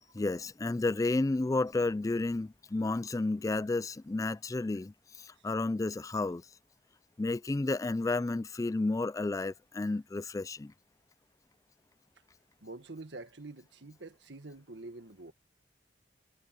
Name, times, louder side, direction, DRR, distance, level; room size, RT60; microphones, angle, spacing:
voice 1, 0.1-6.4 7.2-10.7, left 2 dB, 20° left, 0.3 m, -31 dB
voice 2, 12.6-15.3, right 2 dB, 80° right, 1.7 m, -47 dB
head